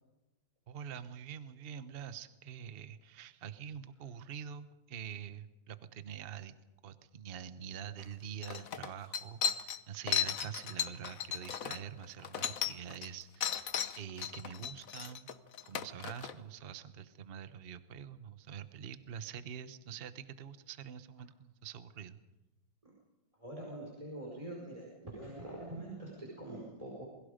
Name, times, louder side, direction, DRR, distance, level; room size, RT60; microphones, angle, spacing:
voice 1, 0.7-6.5 6.8-15.3 15.7-22.2, right 8 dB, 40° right, 12 dB, 0.9 m, -46 dB
sound 1, 8.0-8.1 8.4-13.1 13.4-16.3, left 8 dB, 50° left, 1.2 m, -36 dB
voice 2, 23.4-27.0, right 1 dB, 15° right, -2 dB, 5.0 m, -44 dB
27.5 x 22.0 x 5.2 m, 1.0 s
omnidirectional pair, 2.1 m